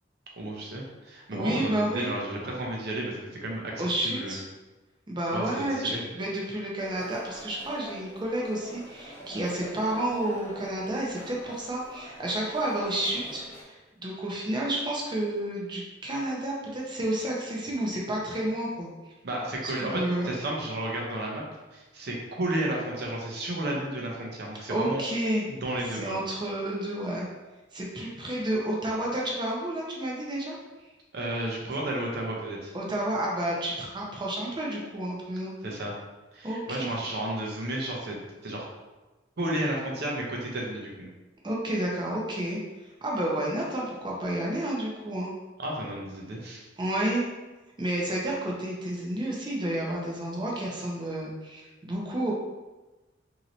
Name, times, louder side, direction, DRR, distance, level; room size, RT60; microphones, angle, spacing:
voice 1, 0.4-4.4 5.3-6.0 19.2-21.4 21.7-25.0 25.5-26.0 31.1-32.7 35.6-35.9 36.3-38.2 38.4-38.7 39.4-41.1 45.6-46.6, right 1 dB, 60° right, -1 dB, 0.7 m, -32 dB
voice 2, 1.3-2.1 3.8-4.4 5.1-18.9 19.6-20.3 24.7-25.5 25.9-27.3 27.7-30.6 32.7-35.5 36.4-37.0 41.4-42.6 43.0-45.3 46.8-47.3 47.8-52.3, right 1 dB, 25° right, -3 dB, 0.6 m, -30 dB
sound 1, 6.8-13.6, equal, 15° left, 0.7 m, -45 dB
3.0 x 2.8 x 2.6 m, 1.1 s
head